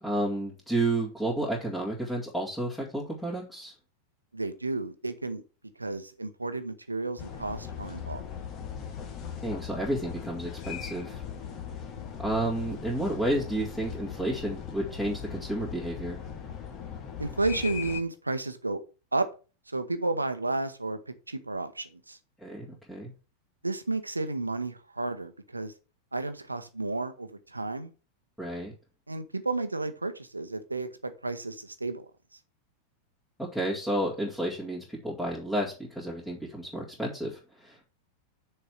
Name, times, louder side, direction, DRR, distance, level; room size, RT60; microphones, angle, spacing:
voice 1, 0.0-3.7 9.4-11.2 12.2-16.2 22.4-23.1 28.4-28.7 33.5-37.8, right 1 dB, 5° left, 2.4 m, -31 dB
voice 2, 4.3-5.4 5.8-8.2 12.0-12.1 17.2-18.8 19.1-19.3 19.7-22.2 23.6-25.7 26.1-27.9 29.1-32.0, right 2 dB, 80° right, 0.9 m, -32 dB
sound 1, 7.2-18.0, left 8 dB, 35° left, 1.6 m, -39 dB
6.6 x 4.6 x 6.4 m
figure-of-eight pair, 90°, 0 cm